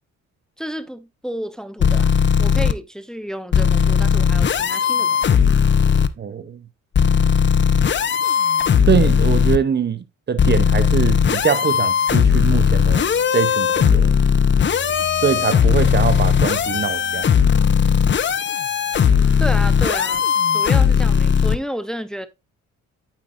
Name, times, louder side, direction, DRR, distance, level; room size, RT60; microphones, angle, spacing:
voice 1, 0.6-2.1 2.4-5.4 19.4-20.2 20.5-22.3, equal, ahead, 0.7 m, -31 dB
sound 1, 1.8-2.7 3.5-6.1 6.9-9.6 10.4-21.6, left 7 dB, 40° left, 0.7 m, -17 dB
voice 2, 6.2-6.6 8.9-13.1 13.3-14.1 15.2-17.4, right 7 dB, 35° right, 0.7 m, -23 dB
sound 2, 11.6-17.6, left 1 dB, 80° right, 4.2 m, -40 dB
9.1 x 7.4 x 2.5 m
cardioid pair, 90°, 30 cm